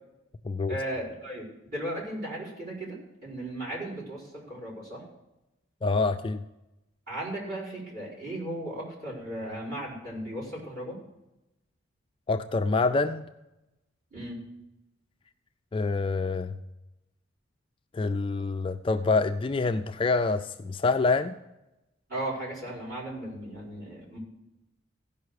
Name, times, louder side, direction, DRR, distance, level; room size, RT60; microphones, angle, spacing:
voice 1, 0.7-5.0 7.1-11.0 14.1-14.4 22.1-24.2, right 1 dB, 45° right, -6 dB, 4.9 m, -36 dB
voice 2, 5.8-6.4 12.3-13.3 15.7-16.6 17.9-21.4, left 3 dB, 25° left, 8 dB, 0.3 m, -26 dB
15.5 x 5.6 x 6.4 m, 0.95 s
head